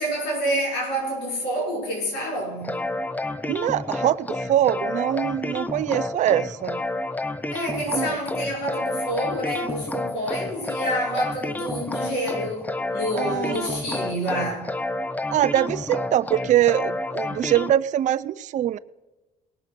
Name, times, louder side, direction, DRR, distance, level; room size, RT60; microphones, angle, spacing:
voice 1, 0.0-2.7 7.5-14.7, equal, 90° left, 0 dB, 5.6 m, -28 dB
sound 1, 2.6-17.7, left 2 dB, 10° left, 0.5 m, -30 dB
voice 2, 3.5-6.8 7.9-8.2 13.1-13.8 15.3-18.8, right 12 dB, 45° right, 14 dB, 0.4 m, -23 dB
19.0 x 6.6 x 5.9 m, 1.1 s
cardioid pair, 110°, 17 cm